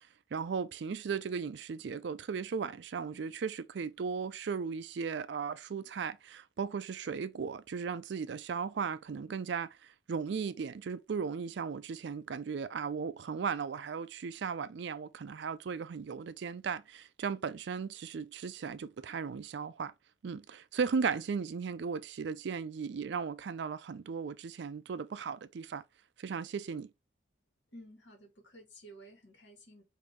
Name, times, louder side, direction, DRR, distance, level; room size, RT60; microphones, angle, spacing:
voice 1, 0.3-19.9 20.2-25.8 26.2-26.9, right 6 dB, 60° right, 0.4 m, -36 dB
voice 2, 27.7-29.8, right 1 dB, 65° left, 1.8 m, -53 dB
5.1 x 2.7 x 3.2 m
head